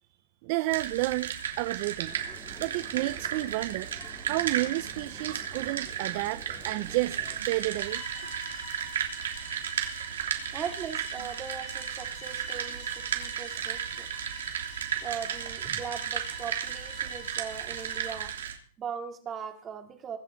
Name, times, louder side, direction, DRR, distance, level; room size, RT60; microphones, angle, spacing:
voice 1, 0.4-2.2 2.6-3.9 4.3-8.0, right 19 dB, 45° right, 0.7 m, -31 dB
sound 1, 0.7-18.5, right 9 dB, 85° right, 3.2 m, -34 dB
sound 2, 2.0-7.4, left 3 dB, 10° left, 2.4 m, -50 dB
Bowed string instrument, 7.7-18.3, left 6 dB, 30° left, 3.0 m, -48 dB
voice 2, 10.2-14.1 15.0-18.3 18.8-20.2, right 7 dB, 20° right, 2.6 m, -39 dB
23.5 x 8.8 x 4.6 m
hypercardioid pair, 150°, 0 cm